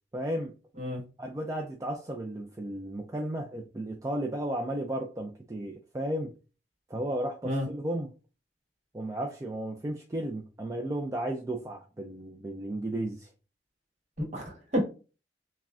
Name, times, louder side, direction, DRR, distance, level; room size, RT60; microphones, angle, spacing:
voice 1, 0.1-0.5 1.2-6.3 6.9-8.1 8.9-13.3, right 1 dB, 15° right, 0.3 m, -34 dB
voice 2, 14.2-14.8, equal, 40° right, 1.2 m, -30 dB
5.8 x 2.1 x 2.4 m
head